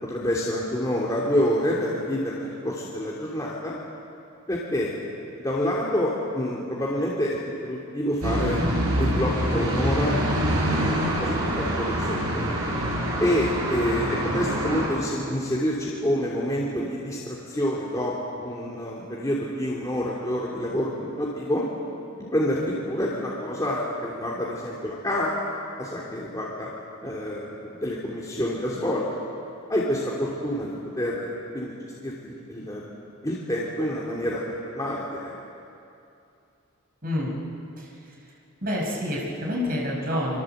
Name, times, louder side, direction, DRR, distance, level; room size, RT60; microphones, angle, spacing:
voice 1, 0.0-3.8 4.5-4.9 5.4-7.4 7.6-8.6 9.0-10.3 10.7-10.8 11.2-11.3 11.6-12.5 13.2-18.1 18.4-21.6 22.3-25.4 25.8-26.7 27.0-29.0 29.7-31.7 32.0-32.8 33.2-34.4 34.7-35.3, equal, 15° left, -5 dB, 2.9 m, -27 dB
sound 1, 8.2-14.9, equal, 85° right, 7.6 m, -25 dB
voice 2, 37.0-37.3 37.8-38.1 38.6-40.4, left 1 dB, 45° right, -2 dB, 5.8 m, -28 dB
27.0 x 24.5 x 8.0 m, 2.7 s
head